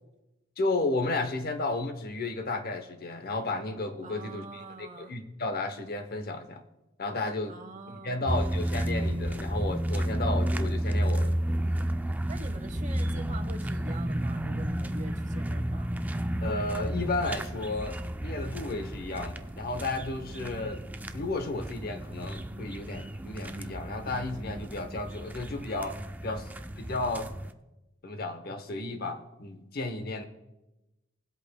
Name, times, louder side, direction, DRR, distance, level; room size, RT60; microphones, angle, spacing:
voice 1, 0.6-4.6 5.0-6.6 7.0-7.5 7.9-11.4 16.4-20.8 21.1-26.5 26.8-27.3 28.0-30.2, left 2 dB, 50° left, 8 dB, 0.8 m, -33 dB
voice 2, 4.0-5.1 7.1-7.2 7.5-8.4 12.3-15.9, right 2 dB, 40° right, 7 dB, 0.9 m, -44 dB
sound 1, 8.3-27.5, right 1 dB, 10° right, 0.3 m, -32 dB
20.5 x 8.0 x 2.2 m, 0.99 s
head